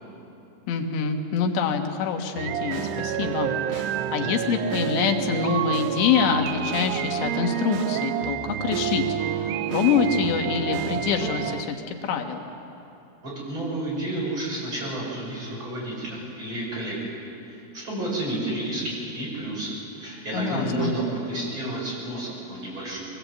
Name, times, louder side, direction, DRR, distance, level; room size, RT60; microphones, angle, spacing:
voice 1, 0.7-9.0 9.4-12.5 20.3-20.9, left 7 dB, 85° left, 4 dB, 3.5 m, -25 dB
sound 1, 2.4-11.6, right 10 dB, 80° right, 2.8 m, -28 dB
voice 2, 13.2-17.1 17.5-23.0, right 1 dB, 30° right, -5 dB, 6.8 m, -31 dB
23.5 x 18.5 x 8.2 m, 2.9 s
omnidirectional pair, 4.9 m